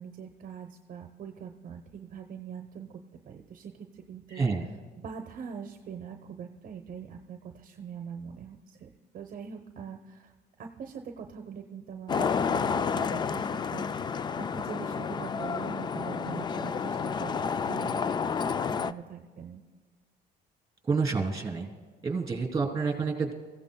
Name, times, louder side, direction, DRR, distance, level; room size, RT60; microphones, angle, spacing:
voice 1, 0.0-3.0 3.2-4.5 5.0-8.9 9.1-10.3 10.6-19.6, right 7 dB, 55° right, 5 dB, 0.8 m, -43 dB
voice 2, 4.3-4.7 20.9-21.7 22.0-23.3, right 4 dB, 20° right, 2 dB, 3.1 m, -28 dB
Traffic noise roadway noise, 12.1-18.9, left 6 dB, 25° left, 0.3 m, -30 dB
23.0 x 15.5 x 2.3 m, 1.5 s
cardioid pair, 110°, 17 cm